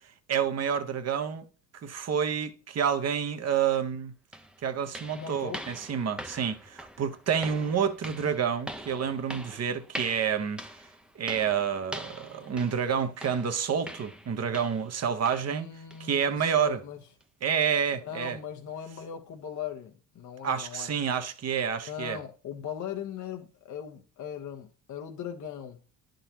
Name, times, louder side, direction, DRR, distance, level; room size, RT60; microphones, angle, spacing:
voice 1, 0.3-1.4 1.8-4.1 4.6-10.6 11.1-15.7 16.0-16.8 17.4-18.4 20.4-22.2, right 7 dB, 40° right, 1.1 m, -29 dB
sound 1, 3.7-3.8 4.3-15.0 15.3-15.5 15.9-16.1 16.6-16.7 17.2-17.3, equal, ahead, 0.8 m, -43 dB
voice 2, 5.1-5.6 15.5-17.0 17.9-20.9 21.8-25.8, left 8 dB, 45° left, 1.1 m, -39 dB
11.0 x 3.9 x 2.9 m
hypercardioid pair, 65°, 40 cm